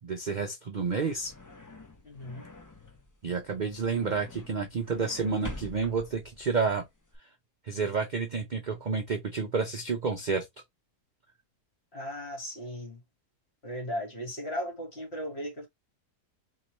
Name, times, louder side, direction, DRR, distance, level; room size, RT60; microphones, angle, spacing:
voice 1, 0.0-1.3 3.2-6.8 7.7-10.4, right 5 dB, 60° right, 0.4 m, -30 dB
sound 1, 0.8-7.2, left 2 dB, 25° left, 0.4 m, -47 dB
voice 2, 2.0-2.4 11.9-13.0 13.6-15.7, equal, 40° left, 2.0 m, -36 dB
4.1 x 3.0 x 3.0 m
omnidirectional pair, 1.6 m